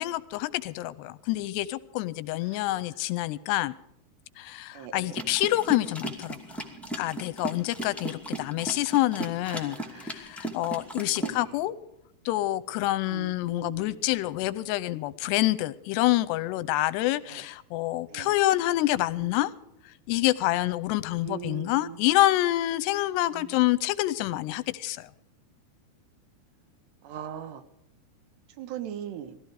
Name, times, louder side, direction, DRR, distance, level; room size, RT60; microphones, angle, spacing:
voice 1, 0.0-3.7 4.4-6.4 6.9-11.7 12.3-19.5 20.1-25.1, left 16 dB, 85° left, 15 dB, 2.8 m, -27 dB
voice 2, 4.7-5.2 9.5-10.1 11.1-11.5 13.1-13.9 17.3-17.4 18.1-18.3 19.2-19.3 21.2-22.0 23.3-23.6 27.0-27.6 28.6-29.4, right 10 dB, 85° right, 11 dB, 3.4 m, -40 dB
sound 1, 5.1-11.4, right 1 dB, ahead, 1.1 m, -36 dB
19.5 x 14.5 x 4.9 m, 0.83 s
omnidirectional pair, 4.8 m